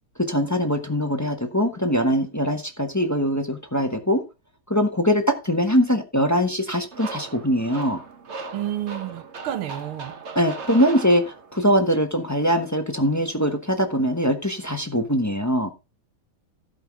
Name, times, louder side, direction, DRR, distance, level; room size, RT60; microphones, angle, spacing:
voice 1, 0.3-4.2 4.7-8.0 10.3-15.7, equal, 10° left, 0.8 m, -22 dB
sound 1, 6.9-11.7, right 4 dB, 40° right, 1.2 m, -38 dB
voice 2, 8.5-10.1, right 12 dB, 85° right, 1.8 m, -30 dB
16.0 x 5.4 x 3.7 m
omnidirectional pair, 2.2 m